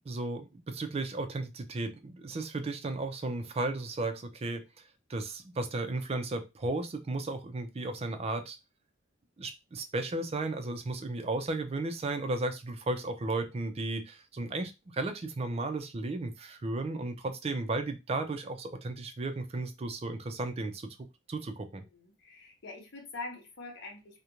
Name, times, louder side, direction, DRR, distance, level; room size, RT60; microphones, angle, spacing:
voice 1, 0.1-4.6 5.1-8.6 9.4-20.9 21.3-21.8, right 2 dB, 30° right, 7 dB, 0.4 m, -34 dB
voice 2, 21.8-24.2, left 3 dB, 60° left, 1 dB, 0.8 m, -44 dB
2.4 x 2.1 x 2.9 m, 0.25 s
head